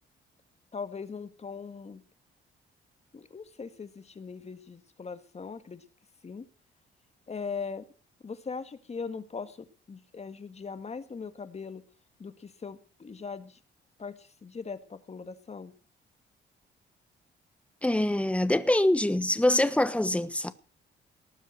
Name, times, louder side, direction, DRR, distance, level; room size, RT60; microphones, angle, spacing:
voice 1, 0.7-2.0 3.1-5.8 6.2-6.5 7.3-7.9 8.2-11.8 12.2-13.6 14.0-15.7, left 5 dB, 35° left, 1.8 m, -40 dB
voice 2, 17.8-20.5, left 1 dB, 5° left, 1.3 m, -24 dB
19.0 x 7.2 x 6.6 m
cardioid pair, 90°, 20 cm